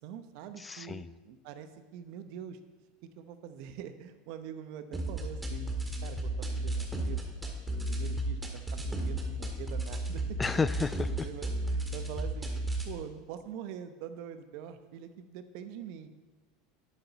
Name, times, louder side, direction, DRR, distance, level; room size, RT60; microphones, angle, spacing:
voice 1, 0.0-2.6 3.1-5.7 6.0-7.2 7.9-8.4 8.9-10.4 10.7-10.8 11.1-16.1, right 9 dB, 65° right, 10 dB, 0.9 m, -44 dB
voice 2, 0.6-1.1 10.4-11.3, left 4 dB, 20° left, 16 dB, 0.3 m, -32 dB
sound 1, 4.9-12.9, right 1 dB, 10° right, 1.7 m, -34 dB
11.5 x 7.8 x 4.1 m, 1.2 s
supercardioid pair, 105°, 0 cm